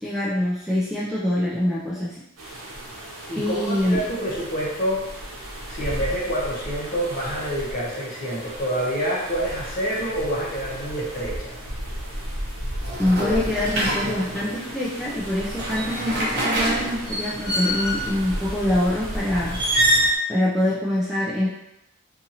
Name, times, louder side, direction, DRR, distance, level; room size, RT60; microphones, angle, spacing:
voice 1, 0.0-2.2 3.4-4.0 13.0-19.6 20.3-21.5, left 1 dB, ahead, -8 dB, 0.3 m, -24 dB
sound 1, 2.4-20.1, right 1 dB, 90° right, 0.8 m, -35 dB
voice 2, 3.3-5.1 5.7-11.6, equal, 40° left, -5 dB, 0.8 m, -27 dB
sound 2, 12.8-14.5 15.4-18.2 19.5-20.1, right 1 dB, 50° right, 0.7 m, -25 dB
2.7 x 2.6 x 2.7 m, 0.86 s
head